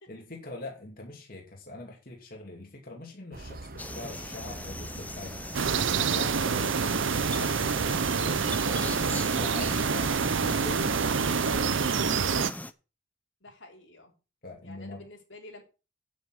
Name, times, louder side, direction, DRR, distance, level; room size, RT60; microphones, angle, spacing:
voice 1, 0.1-12.6 14.4-15.0, left 2 dB, 50° left, 2.7 m, -43 dB
sound 1, 3.3-11.8, right 2 dB, 50° right, 1.1 m, -44 dB
sound 2, 3.8-12.7, left 2 dB, 10° left, 0.6 m, -40 dB
sound 3, 5.5-12.5, right 6 dB, 80° right, 0.7 m, -27 dB
voice 2, 13.4-14.2 14.6-15.6, left 2 dB, 80° left, 3.6 m, -49 dB
9.4 x 7.9 x 6.2 m
head